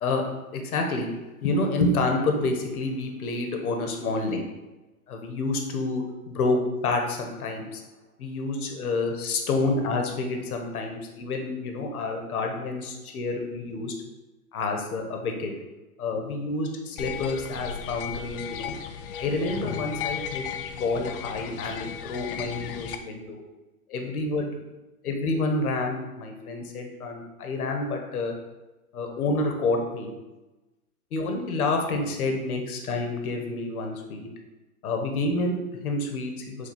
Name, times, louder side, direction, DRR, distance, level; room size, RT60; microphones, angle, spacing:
voice 1, 0.0-1.1 1.4-4.4 5.1-7.8 8.2-13.9 14.5-15.5 16.0-18.7 19.2-23.4 23.9-24.5 25.0-28.3 28.9-30.1 31.1-34.3 34.8-36.7, left 2 dB, 75° left, 3 dB, 1.3 m, -28 dB
sound 1, 17.0-23.0, left 8 dB, 40° left, 0.4 m, -35 dB
6.8 x 2.7 x 5.4 m, 1.1 s
hypercardioid pair, 135°, 44 cm